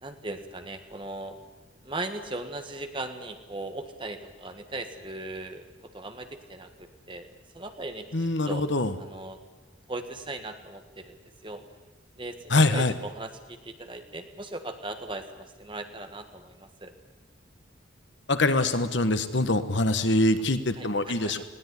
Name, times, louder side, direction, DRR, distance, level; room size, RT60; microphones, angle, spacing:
voice 1, 0.0-1.4 1.8-5.7 5.9-7.3 7.5-8.1 8.5-8.6 9.0-9.4 9.9-11.1 11.4-11.6 12.2-16.9 20.8-21.4, right 2 dB, 25° right, 7 dB, 1.6 m, -38 dB
voice 2, 8.1-8.9 12.5-12.9 18.3-21.4, left 2 dB, 70° left, 10 dB, 1.4 m, -24 dB
20.0 x 17.0 x 9.9 m, 1.2 s
head